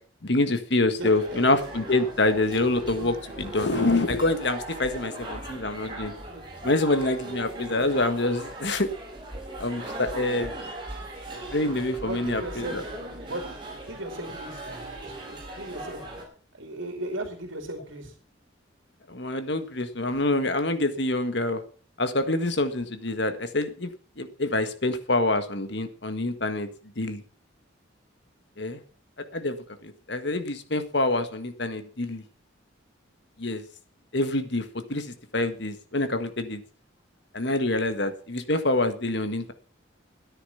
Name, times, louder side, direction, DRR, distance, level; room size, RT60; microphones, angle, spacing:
voice 1, 0.2-6.1 6.6-8.9 9.6-10.5 11.5-12.8 19.1-21.6 22.0-23.9 24.2-26.7 27.0-27.2 28.6-28.8 29.3-29.6 29.8-32.2 33.4-33.6 34.1-34.6 34.9-35.0 35.3-36.6 37.3-39.5, left 2 dB, 60° left, 9 dB, 1.6 m, -26 dB
sound 1, 1.0-16.2, right 1 dB, 25° right, 4.8 m, -39 dB
voice 2, 1.0-1.4 12.0-12.8 13.3-16.0 16.5-18.1, right 1 dB, 70° right, 5 dB, 2.7 m, -36 dB
13.5 x 10.0 x 5.7 m, 0.40 s
head